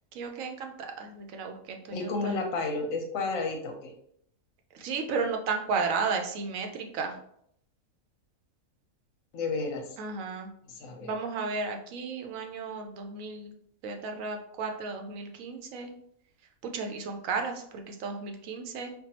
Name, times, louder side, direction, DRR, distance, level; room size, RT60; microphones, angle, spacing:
voice 1, 0.1-2.4 4.7-7.2 10.0-10.5 11.0-13.5 13.8-15.9 16.6-18.9, right 4 dB, 75° right, 4 dB, 1.0 m, -34 dB
voice 2, 1.9-3.9 9.3-9.9 10.7-11.1, left 3 dB, 80° left, 3 dB, 1.1 m, -32 dB
4.5 x 2.3 x 2.8 m, 0.70 s
omnidirectional pair, 1.4 m